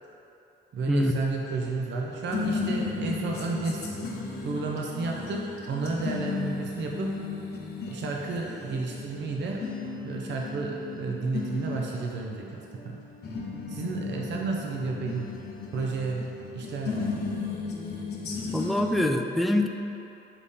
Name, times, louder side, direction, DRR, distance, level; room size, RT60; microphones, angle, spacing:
voice 1, 0.7-4.0 4.4-7.1 7.9-9.6 10.0-12.6 12.8-13.0 13.7-15.3 15.7-16.3 16.5-17.0, right 3 dB, 65° right, -1 dB, 0.7 m, -32 dB
sound 1, 1.5-19.0, left 4 dB, 55° left, 1.0 m, -35 dB
voice 2, 18.5-19.7, left 1 dB, ahead, 4 dB, 0.4 m, -24 dB
6.9 x 3.6 x 4.2 m, 2.9 s
cardioid pair, 90°, 20 cm